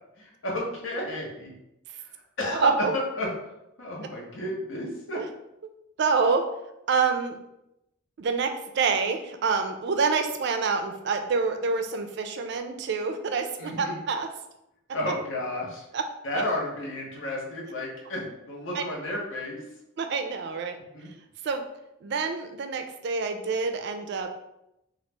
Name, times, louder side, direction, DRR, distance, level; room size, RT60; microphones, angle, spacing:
voice 1, 0.2-1.5 2.0-2.1 2.4-3.3 3.8-5.2 13.6-14.0 14.9-15.8 16.2-19.7 20.9-21.1, left 1 dB, 80° left, -3 dB, 0.9 m, -32 dB
voice 2, 2.6-2.9 5.2-5.3 6.0-6.5 6.9-7.4 8.2-14.3 15.9-16.0 16.3-16.4 18.7-18.8 20.0-20.8 21.4-21.6 22.0-24.3, right 4 dB, 60° right, 6 dB, 0.4 m, -27 dB
2.9 x 2.4 x 3.2 m, 0.86 s
head